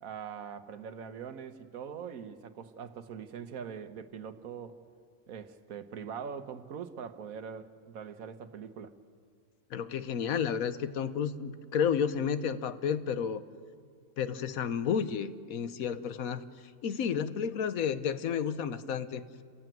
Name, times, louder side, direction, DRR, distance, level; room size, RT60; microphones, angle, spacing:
voice 1, 0.0-4.8 5.3-8.9, right 7 dB, 85° right, 1.5 m, -42 dB
voice 2, 9.7-13.4 14.2-16.4 16.8-19.2, left 7 dB, 85° left, 1.3 m, -31 dB
29.0 x 15.5 x 9.1 m
omnidirectional pair, 1.4 m